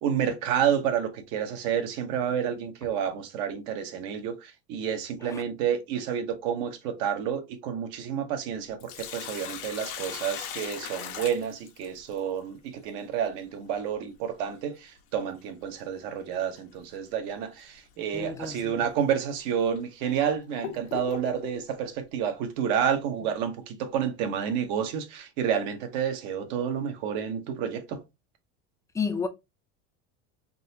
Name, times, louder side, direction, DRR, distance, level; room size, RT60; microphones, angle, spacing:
voice 1, 0.0-28.0, right 8 dB, 65° right, 1.0 m, -30 dB
Sink (filling or washing), 8.6-12.2 14.6-14.7 16.6-16.8 17.3-17.4 18.2-18.3 19.0-19.1 19.7-21.6, left 9 dB, 85° left, 1.0 m, -39 dB
voice 2, 18.1-18.9 28.9-29.3, left 5 dB, 10° left, 0.4 m, -32 dB
4.0 x 2.8 x 2.7 m
supercardioid pair, 140°, 32 cm